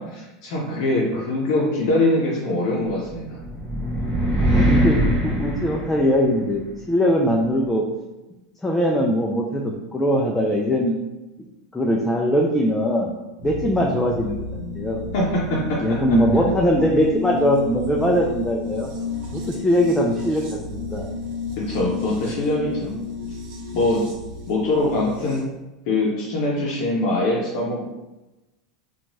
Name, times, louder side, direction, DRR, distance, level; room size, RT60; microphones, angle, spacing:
voice 1, 0.0-3.4 15.1-16.0 16.3-16.5 21.6-22.9 23.7-24.1 24.5-25.4 25.9-27.9, left 2 dB, 60° left, -5 dB, 0.6 m, -23 dB
sound 1, 3.0-6.5, equal, 10° right, 1.2 m, -22 dB
voice 2, 4.5-7.8 8.6-10.9 11.7-13.1 13.4-15.0 15.8-18.9 19.3-21.1, equal, 10° left, -1 dB, 0.4 m, -21 dB
sound 2, 13.4-25.4, left 4 dB, 55° right, 0.8 m, -32 dB
2.9 x 2.3 x 2.7 m, 1.0 s
hypercardioid pair, 105°, 3 cm